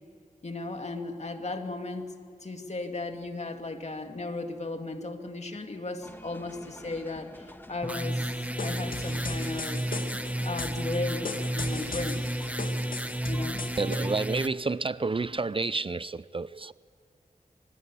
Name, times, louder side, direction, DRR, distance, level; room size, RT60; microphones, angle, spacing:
voice 1, 0.4-2.1 2.4-8.3 8.6-9.8 10.4-12.3 13.3-13.6, left 2 dB, 50° left, 5 dB, 2.5 m, -36 dB
sound 1, 6.0-14.5, left 1 dB, 15° left, 1.7 m, -48 dB
sound 2, 7.8-14.5, right 1 dB, 10° right, 1.4 m, -32 dB
sound 3, 8.6-14.0, left 4 dB, 80° left, 2.3 m, -38 dB
voice 2, 13.8-16.7, right 3 dB, 40° right, 17 dB, 0.5 m, -30 dB
24.5 x 20.5 x 8.5 m, 2.3 s
wide cardioid pair, 65°, 14 cm